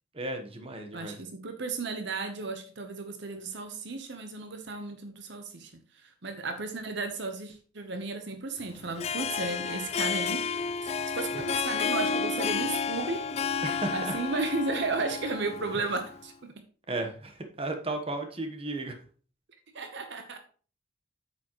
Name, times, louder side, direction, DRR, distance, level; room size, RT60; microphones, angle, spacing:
voice 1, 0.1-1.2 13.6-14.1 16.9-19.0, right 2 dB, 30° right, 5 dB, 1.2 m, -34 dB
voice 2, 0.9-5.7 6.0-10.4 10.8-13.3 13.9-16.5 19.7-20.4, right 3 dB, 60° right, 7 dB, 0.9 m, -34 dB
Harp, 8.8-16.2, left 5 dB, 30° left, 0.4 m, -31 dB
8.8 x 7.0 x 3.1 m, 0.40 s
head